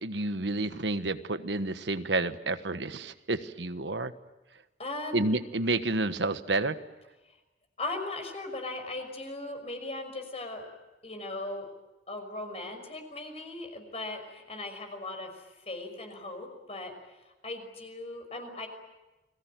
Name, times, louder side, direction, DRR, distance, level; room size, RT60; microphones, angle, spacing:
voice 1, 0.0-4.1 5.1-6.8, right 2 dB, 90° right, 11 dB, 1.4 m, -30 dB
voice 2, 4.8-5.2 7.2-7.4 7.8-10.7 11.0-11.7 12.1-18.7, left 2 dB, 35° left, 5 dB, 5.8 m, -38 dB
29.5 x 22.0 x 9.2 m, 1.1 s
head